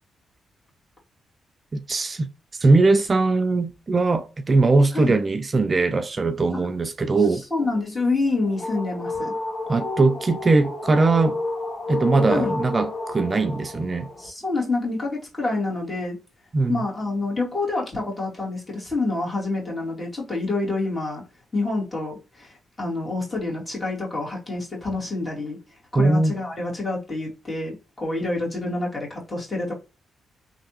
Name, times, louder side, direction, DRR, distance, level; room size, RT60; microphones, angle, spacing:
voice 1, 1.7-2.3 2.5-7.4 9.7-11.4 11.9-14.1 16.5-16.7 25.9-26.3, right 3 dB, 40° right, 0.4 m, -20 dB
voice 2, 7.3-9.4 12.3-12.6 14.2-16.2 16.7-21.2 21.5-25.6 25.9-29.7, left 2 dB, 30° left, 1.9 m, -27 dB
sound 1, 8.2-14.3, left 2 dB, 75° left, 1.1 m, -30 dB
3.2 x 2.6 x 2.9 m
cardioid pair, 65°, 0 cm